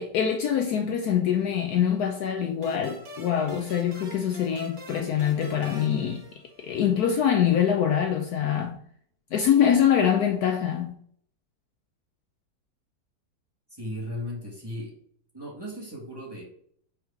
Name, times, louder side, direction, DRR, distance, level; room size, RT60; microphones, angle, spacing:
voice 1, 0.0-6.2 6.6-8.8 9.3-11.0, left 9 dB, 70° left, 1.0 m, -24 dB
sound 1, 2.6-7.0, right 1 dB, 35° right, 1.1 m, -45 dB
voice 2, 13.7-14.9 15.3-16.4, left 1 dB, 15° right, 1.7 m, -36 dB
4.7 x 4.6 x 5.0 m
omnidirectional pair, 1.9 m